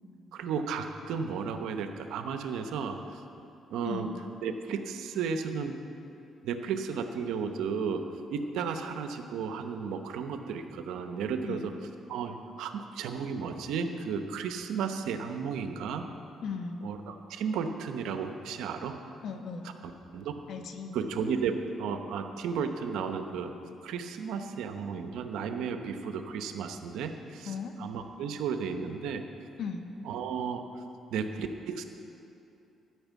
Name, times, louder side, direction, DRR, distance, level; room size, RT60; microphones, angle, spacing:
voice 1, 0.3-3.2 3.7-4.1 4.4-5.8 6.4-11.7 12.1-16.1 16.8-19.0 19.6-20.3 20.9-23.5 23.8-29.2 30.0-30.8 31.1-31.8, right 6 dB, 85° right, 7 dB, 0.8 m, -34 dB
voice 2, 16.4-16.8 19.2-19.7 20.5-21.0 27.4-27.8 29.6-29.9, left 5 dB, 70° left, 6 dB, 1.0 m, -36 dB
12.5 x 5.9 x 8.3 m, 2.8 s
cardioid pair, 90°, 0 cm